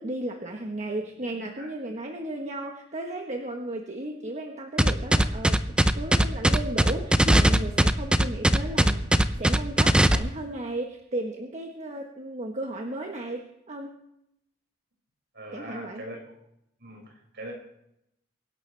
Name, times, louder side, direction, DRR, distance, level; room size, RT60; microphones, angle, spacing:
voice 1, 0.0-5.6 5.9-14.0 15.5-16.0, right 1 dB, 35° right, 2 dB, 1.3 m, -35 dB
sound 1, 4.8-10.2, right 1 dB, 5° right, 0.6 m, -19 dB
voice 2, 15.3-16.2 16.8-17.5, right 1 dB, 60° right, 0 dB, 5.9 m, -41 dB
23.5 x 11.5 x 3.4 m, 0.78 s
head